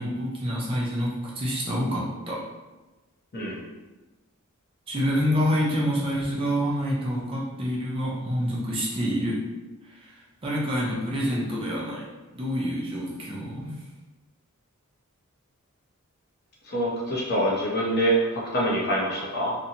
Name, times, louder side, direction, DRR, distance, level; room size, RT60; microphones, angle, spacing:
voice 1, 0.0-2.4 4.9-9.4 10.4-12.0 12.3-13.8, equal, 25° right, -4 dB, 0.5 m, -27 dB
voice 2, 16.6-19.6, right 1 dB, 45° left, -4 dB, 0.6 m, -25 dB
2.6 x 2.1 x 2.7 m, 1.1 s
head